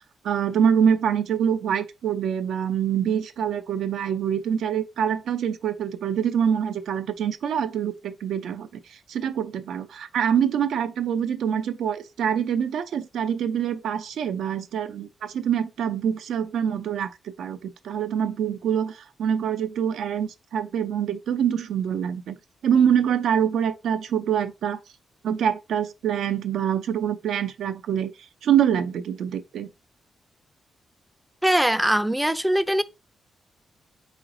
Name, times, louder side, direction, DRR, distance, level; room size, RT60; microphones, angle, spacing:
voice 1, 0.2-8.7 9.1-22.4 22.6-24.8 25.2-28.1 28.4-29.7, right 8 dB, 80° right, 0.5 m, -25 dB
voice 2, 31.4-32.8, right 1 dB, 5° right, 0.4 m, -21 dB
3.8 x 3.1 x 3.8 m
cardioid pair, 65°, 0 cm